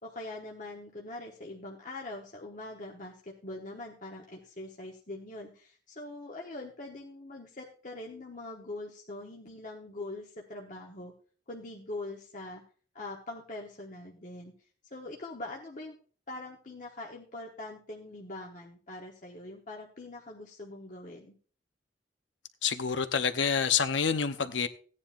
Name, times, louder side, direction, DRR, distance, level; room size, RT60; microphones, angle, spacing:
voice 1, 0.0-11.1 11.5-12.6 12.9-14.5 14.9-15.9 16.3-21.4, left 2 dB, 45° left, 1.1 m, -43 dB
voice 2, 22.6-24.7, left 6 dB, 90° left, 0.8 m, -27 dB
16.0 x 9.8 x 2.5 m
head